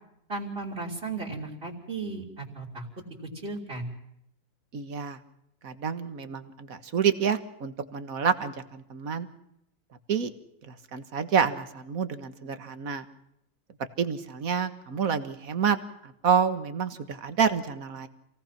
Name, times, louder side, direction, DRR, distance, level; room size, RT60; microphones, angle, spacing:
voice 1, 0.3-2.8 3.3-3.9, right 3 dB, 40° right, -2 dB, 3.6 m, -35 dB
voice 2, 4.7-5.2 5.6-9.3 10.1-10.3 10.7-13.1 14.0-15.8 16.0-18.1, right 7 dB, 70° right, 10 dB, 1.9 m, -28 dB
27.5 x 18.0 x 5.9 m, 0.80 s
omnidirectional pair, 1.6 m